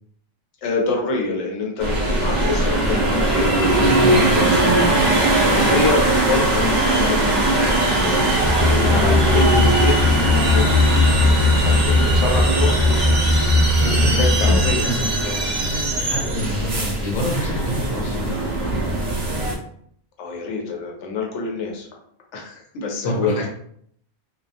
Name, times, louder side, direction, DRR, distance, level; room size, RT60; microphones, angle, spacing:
voice 1, 0.6-8.2 8.6-10.8 11.5-13.0 13.8-14.9 15.2-15.4 20.2-21.9 22.3-23.5, left 3 dB, 90° left, 0 dB, 0.9 m, -26 dB
sound 1, 1.8-19.6, right 1 dB, 50° right, 0.6 m, -20 dB
voice 2, 3.8-4.5 9.3-9.7 13.8-14.2 14.5-15.2 16.0-18.4 23.0-23.5, left 1 dB, 50° left, -1 dB, 0.8 m, -27 dB
sound 2, 8.4-14.7, left 2 dB, 10° left, 0.5 m, -18 dB
sound 3, 9.9-12.6 13.5-15.3, right 5 dB, 80° right, 0.9 m, -33 dB
2.3 x 2.1 x 2.7 m, 0.65 s
omnidirectional pair, 1.2 m